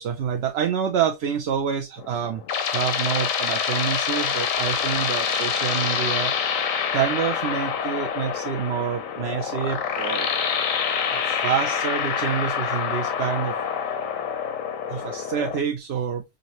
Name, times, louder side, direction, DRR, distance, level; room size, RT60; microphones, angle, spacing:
voice 1, 0.0-2.4 2.7-6.3 6.9-10.3 11.1-13.5 14.9-16.2, right 8 dB, 65° right, 0.7 m, -27 dB
sound 1, 2.0-15.6, left 7 dB, 85° left, 1.1 m, -26 dB
5.0 x 2.6 x 2.9 m
omnidirectional pair, 1.4 m